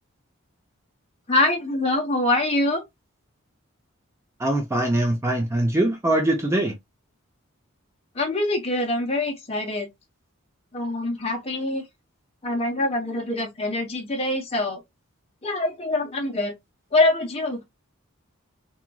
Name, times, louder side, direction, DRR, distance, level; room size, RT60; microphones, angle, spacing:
voice 1, 1.3-2.8 8.1-9.9 10.7-11.8 12.4-14.8 15.4-16.5 16.9-17.6, left 2 dB, 25° left, 0.8 m, -24 dB
voice 2, 4.4-6.7, right 1 dB, 10° right, 0.4 m, -22 dB
2.9 x 2.5 x 2.2 m
head